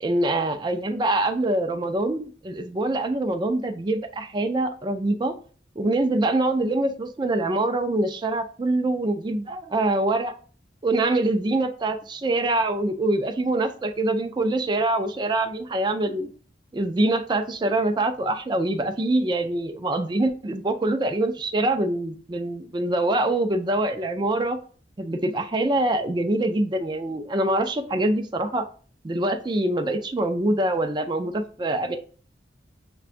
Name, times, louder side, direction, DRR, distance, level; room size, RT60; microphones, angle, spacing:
voice 1, 0.0-5.3 5.8-10.3 10.8-16.3 16.7-24.6 25.0-28.6 29.0-32.0, right 2 dB, 25° right, 6 dB, 0.4 m, -24 dB
6.7 x 2.3 x 2.5 m, 0.41 s
head